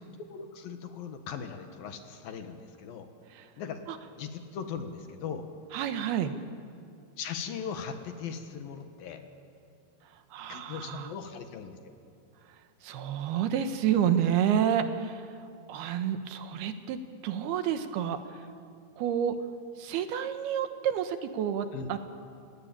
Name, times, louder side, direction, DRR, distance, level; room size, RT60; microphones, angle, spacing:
voice 1, 0.2-3.1 3.6-3.9 4.2-5.5 7.2-9.2 10.5-11.8 21.7-21.9, left 6 dB, 70° left, 6 dB, 3.2 m, -39 dB
voice 2, 5.7-6.3 10.3-11.1 12.8-15.1 15.7-17.0 17.2-18.2 19.0-19.3 19.8-22.0, right 9 dB, 80° right, 8 dB, 3.2 m, -29 dB
30.0 x 17.5 x 9.0 m, 2.4 s
omnidirectional pair, 4.5 m